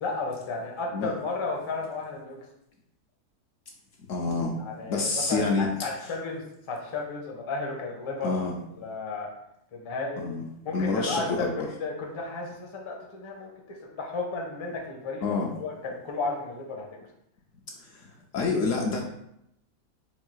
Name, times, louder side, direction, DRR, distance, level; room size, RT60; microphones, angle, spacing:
voice 1, 0.0-2.4 4.6-8.4 8.8-9.3 9.7-10.2 10.6-16.9, left 3 dB, 30° left, 0 dB, 0.5 m, -33 dB
voice 2, 4.1-5.7 8.2-8.5 10.2-10.5 10.7-11.5 15.2-15.5 17.8-19.0, left 3 dB, 70° left, 0 dB, 0.8 m, -28 dB
4.4 x 2.3 x 4.4 m, 0.79 s
omnidirectional pair, 1.6 m